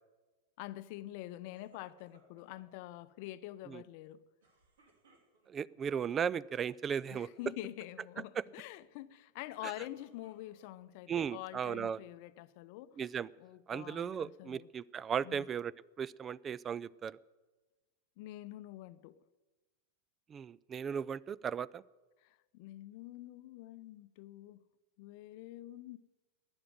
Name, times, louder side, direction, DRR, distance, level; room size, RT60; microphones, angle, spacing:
voice 1, 0.6-4.2 7.1-13.0 13.4-14.7 15.2-15.5 18.2-19.2 22.2-24.6 25.0-26.0, left 15 dB, 50° left, 0.6 m, -46 dB
sound 1, 1.5-2.7 4.4-5.7 6.4-6.8 7.1-7.5 9.3-10.8 11.4-12.1, right 3 dB, 65° right, 2.7 m, -68 dB
voice 2, 5.5-7.3 8.4-8.5 11.1-12.0 13.0-13.3 13.7-15.7 16.0-17.2 20.3-21.8, right 7 dB, 25° right, 0.3 m, -36 dB
12.5 x 9.0 x 9.2 m
figure-of-eight pair, 90°, 0 cm